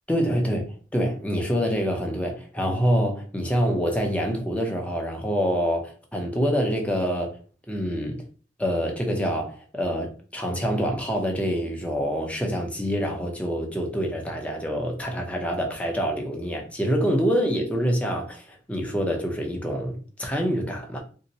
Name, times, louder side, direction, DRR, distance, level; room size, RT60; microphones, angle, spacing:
voice 1, 0.1-0.7 0.9-7.3 7.7-8.2 8.6-21.0, equal, 5° left, 0.6 m, -26 dB
2.7 x 2.1 x 4.0 m
head